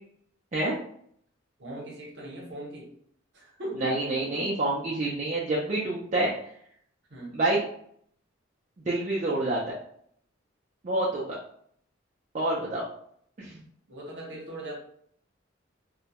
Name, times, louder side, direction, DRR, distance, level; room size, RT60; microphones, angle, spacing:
voice 1, 1.6-2.9 3.3-4.5 7.1-7.3 13.9-14.7, right 1 dB, 60° right, -2 dB, 0.8 m, -39 dB
voice 2, 3.8-6.3 7.3-7.6 8.9-9.7 10.8-11.4 12.3-12.8 13.4-13.5, right 2 dB, 40° right, -5 dB, 0.4 m, -27 dB
2.2 x 2.1 x 2.8 m, 0.64 s
head